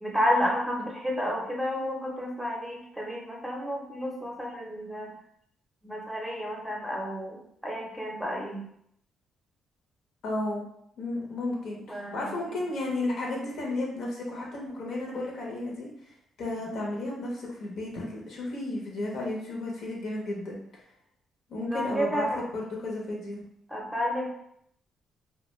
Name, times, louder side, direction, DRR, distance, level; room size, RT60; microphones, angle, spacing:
voice 1, 0.0-5.1 5.8-8.6 11.9-12.6 21.6-22.4 23.7-24.3, equal, 5° right, -2 dB, 0.7 m, -31 dB
voice 2, 10.2-10.6 11.0-15.9 16.4-20.6 21.5-23.4, left 2 dB, 70° left, -2 dB, 0.7 m, -33 dB
2.3 x 2.2 x 3.1 m, 0.71 s
cardioid pair, 90°, 0 cm